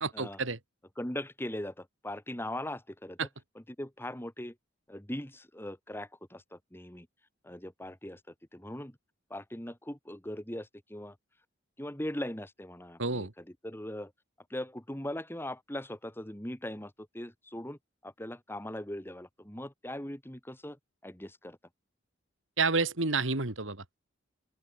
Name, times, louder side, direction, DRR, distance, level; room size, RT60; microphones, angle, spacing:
voice 1, 0.0-0.6 3.2-3.3 13.0-13.3 22.6-24.0, right 4 dB, 75° right, 2.6 m, -30 dB
voice 2, 1.0-3.3 3.5-4.5 4.9-7.1 7.4-8.2 8.5-9.0 9.3-11.2 11.8-14.1 14.5-21.6, left 1 dB, 10° left, 2.7 m, -40 dB
open air
head